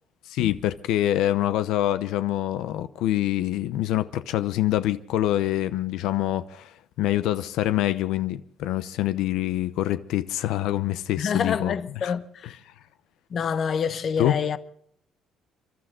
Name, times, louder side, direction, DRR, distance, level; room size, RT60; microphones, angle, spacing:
voice 1, 0.3-6.7 7.0-11.7 12.0-12.1 12.4-12.5 14.2-14.4, left 13 dB, 85° left, 0.8 m, -25 dB
voice 2, 11.2-12.5 13.3-14.6, left 7 dB, 45° left, 0.8 m, -27 dB
30.0 x 12.0 x 3.7 m
cardioid pair, 140°, 0 cm